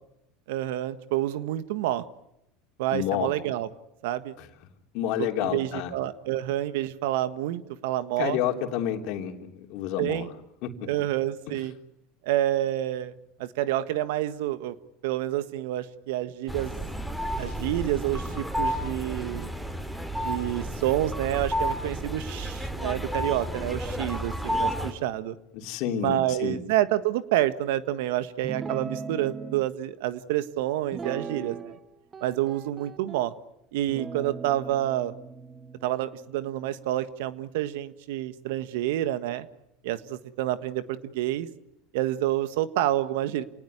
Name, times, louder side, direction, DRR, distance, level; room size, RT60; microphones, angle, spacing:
voice 1, 0.5-2.0 2.8-3.7 4.0-4.3 5.2-8.4 10.0-10.3 10.9-11.7 12.2-13.1 13.4-14.7 15.0-16.8 17.4-19.5 20.2-25.4 26.0-31.7 32.2-33.3 33.7-35.1 35.8-39.5 39.8-41.5 41.9-43.4, right 13 dB, 75° right, 13 dB, 1.6 m, -28 dB
voice 2, 2.9-3.3 4.4-4.5 4.9-5.9 8.2-10.3 10.6-10.9 25.5-26.6, left 10 dB, 65° left, 5 dB, 3.4 m, -29 dB
sound 1, 16.5-24.9, equal, 5° right, 3.6 m, -31 dB
Guitar, 28.4-29.6 30.9-31.8 32.1-33.3 33.9-37.4, right 5 dB, 25° right, 1.4 m, -39 dB
28.0 x 19.0 x 9.7 m, 0.84 s
hypercardioid pair, 95°, 0 cm